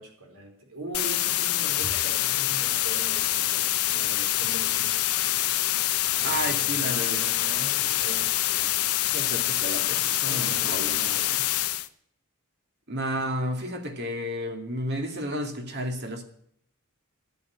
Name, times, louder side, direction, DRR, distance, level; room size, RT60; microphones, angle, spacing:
voice 1, 0.0-5.0 6.2-8.8 10.2-11.6, right 2 dB, 80° right, 4.8 m, -41 dB
sound 1, 0.9-11.9, left 14 dB, 85° left, 0.9 m, -26 dB
voice 2, 6.2-7.2 9.1-11.2 12.9-16.2, equal, 50° right, 2.4 m, -32 dB
12.0 x 8.8 x 9.7 m
head